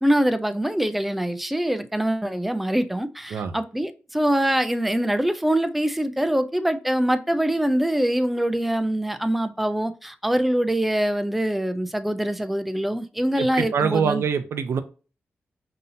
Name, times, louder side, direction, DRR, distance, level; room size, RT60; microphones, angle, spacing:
voice 1, 0.0-14.2, right 1 dB, 5° right, 0.3 m, -24 dB
voice 2, 13.4-14.8, right 6 dB, 80° right, 0.5 m, -24 dB
5.5 x 2.7 x 2.6 m
wide cardioid pair, 145°, 4 cm